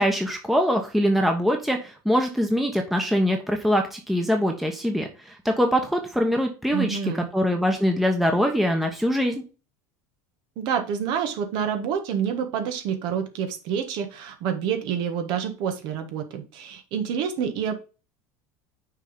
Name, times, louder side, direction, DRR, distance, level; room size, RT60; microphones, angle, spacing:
voice 1, 0.0-7.0 7.3-9.4, equal, ahead, 3 dB, 1.1 m, -23 dB
voice 2, 6.7-7.3 10.6-17.7, right 8 dB, 60° right, 6 dB, 1.5 m, -28 dB
6.3 x 4.1 x 5.1 m, 0.32 s
supercardioid pair, 110°, 9 cm